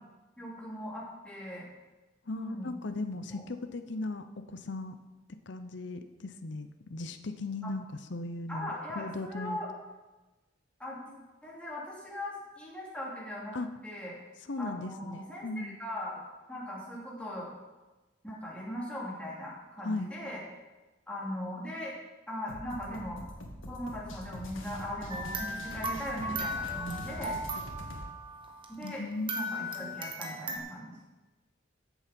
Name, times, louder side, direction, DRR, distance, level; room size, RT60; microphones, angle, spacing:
voice 1, 0.4-1.7 2.3-2.8 3.3-3.4 7.6-7.7 8.5-9.7 10.8-11.1 11.4-14.2 14.6-16.2 16.5-17.5 18.2-20.4 21.1-21.9 22.3-23.2 23.7-27.4 28.7-29.0 29.3-31.0, left 1 dB, 5° left, -6 dB, 3.1 m, -39 dB
voice 2, 2.3-5.0 5.5-8.7 8.9-9.6 13.5-13.7 14.5-15.8 19.8-20.1 28.8-29.3 29.8-30.0, left 2 dB, 65° left, 9 dB, 0.7 m, -37 dB
sound 1, 22.5-28.1, left 1 dB, 85° left, 1.9 m, -43 dB
sound 2, 25.1-29.0 29.3-30.6, equal, 25° right, 1.1 m, -37 dB
14.0 x 7.3 x 5.2 m, 1.1 s
head